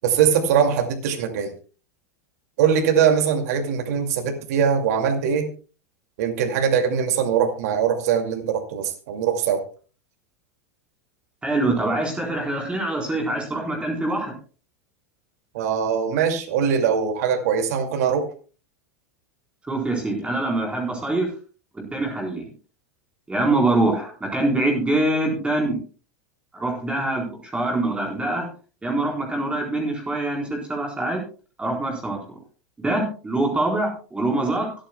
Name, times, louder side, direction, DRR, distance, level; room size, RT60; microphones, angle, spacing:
voice 1, 0.0-1.5 2.6-5.5 6.2-9.6 15.5-18.3, right 7 dB, 70° right, 4 dB, 2.3 m, -21 dB
voice 2, 11.4-14.3 19.7-21.3 21.7-22.5 23.3-25.8 26.5-28.5 28.8-31.2 31.6-32.4 32.8-34.7, right 2 dB, 10° right, 0 dB, 4.1 m, -24 dB
24.5 x 8.9 x 2.3 m, 0.36 s
hypercardioid pair, 110°, 9 cm